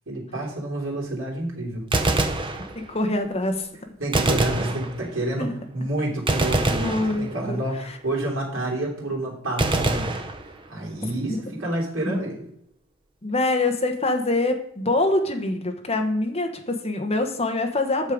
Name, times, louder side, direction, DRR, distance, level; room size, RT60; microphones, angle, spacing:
voice 1, 0.1-1.8 4.0-10.3 10.7-12.5, right 1 dB, 65° right, -2 dB, 3.1 m, -29 dB
Gunshot gunfire, 1.8-3.1 4.1-5.4 6.3-7.7 9.6-10.9, right 2 dB, 25° right, 0.7 m, -25 dB
voice 2, 2.7-3.7 5.4-5.5 6.8-8.0 12.0-12.2 13.2-18.1, left 2 dB, 30° left, 4 dB, 1.1 m, -25 dB
8.2 x 6.4 x 5.1 m, 0.71 s
head